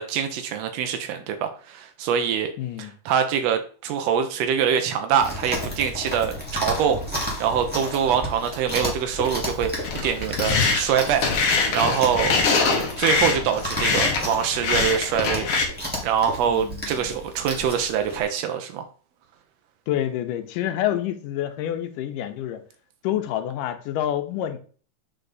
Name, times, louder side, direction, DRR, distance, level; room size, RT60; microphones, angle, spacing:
voice 1, 0.0-2.5 2.8-7.0 7.4-11.3 11.7-12.4 13.0-15.5 16.0-18.9, right 8 dB, 85° right, 6 dB, 1.4 m, -24 dB
voice 2, 2.6-2.9 16.5-17.1 19.9-22.6 23.0-24.6, left 11 dB, 85° left, 7 dB, 2.3 m, -28 dB
Chewing mastication, 5.2-18.2, equal, 10° right, 0.6 m, -33 dB
sound 1, 9.8-15.7, left 4 dB, 60° left, 1.5 m, -23 dB
8.0 x 3.3 x 4.0 m, 0.42 s
omnidirectional pair, 3.8 m